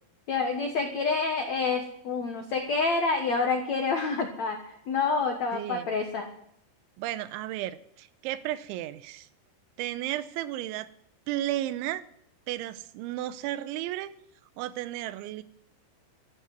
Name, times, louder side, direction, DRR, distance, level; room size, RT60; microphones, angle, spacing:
voice 1, 0.3-6.3, left 4 dB, 85° left, 3 dB, 1.5 m, -28 dB
voice 2, 5.5-5.9 7.0-9.3 9.8-10.9 11.3-12.0 12.5-14.1 14.6-15.4, right 14 dB, 80° right, 13 dB, 3.0 m, -33 dB
13.5 x 10.5 x 9.4 m, 0.74 s
omnidirectional pair, 5.7 m